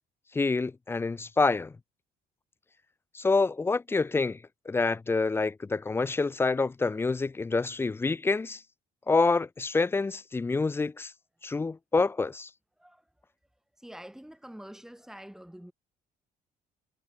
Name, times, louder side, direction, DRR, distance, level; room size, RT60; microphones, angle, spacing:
voice 1, 0.3-1.7 3.1-4.4 4.7-8.6 9.1-11.1 11.4-12.5, left 3 dB, 15° left, 0.3 m, -27 dB
voice 2, 13.8-15.7, equal, 5° right, 4.0 m, -46 dB
cardioid pair, 110°, 17 cm